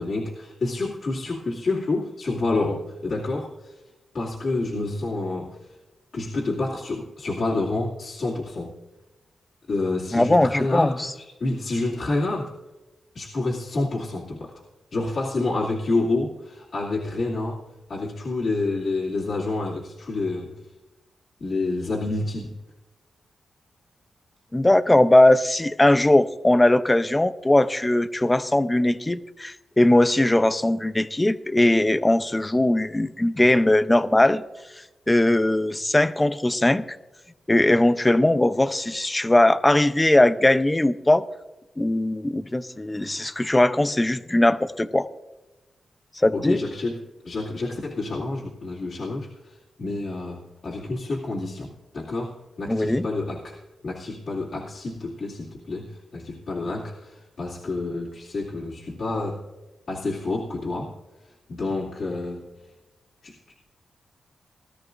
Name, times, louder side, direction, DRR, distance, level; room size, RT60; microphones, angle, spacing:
voice 1, 0.0-3.8 4.1-5.6 6.1-8.7 9.7-12.5 13.1-14.6 14.9-17.6 17.9-20.6 21.4-22.5 46.3-59.5 59.9-60.9 61.5-62.5 63.2-63.4, left 2 dB, 60° left, -5 dB, 2.5 m, -28 dB
voice 2, 10.1-11.1 24.5-34.4 35.1-36.8 37.5-41.2 41.8-45.1 46.2-46.6 52.7-53.1, left 1 dB, 15° left, 12 dB, 0.7 m, -20 dB
19.0 x 13.5 x 2.6 m, 1.1 s
cardioid pair, 75°, 0 cm